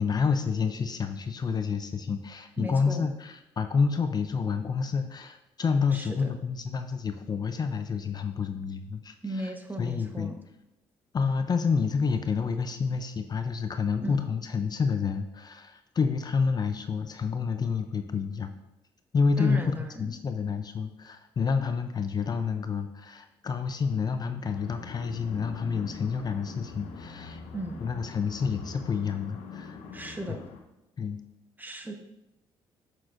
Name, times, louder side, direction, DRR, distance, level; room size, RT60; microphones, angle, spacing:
voice 1, 0.0-10.3 11.1-18.5 19.1-27.4 27.8-29.8 30.3-30.4 31.0-31.2, left 5 dB, 40° left, 8 dB, 0.5 m, -29 dB
voice 2, 2.6-3.0 5.9-6.3 9.2-10.4 14.0-14.2 19.4-20.1 27.5-27.8 29.9-30.4 31.6-31.9, right 2 dB, 15° right, 5 dB, 1.0 m, -36 dB
sound 1, 24.5-30.6, left 4 dB, 85° left, 0.7 m, -43 dB
7.3 x 6.2 x 2.5 m, 0.89 s
supercardioid pair, 70°, 10 cm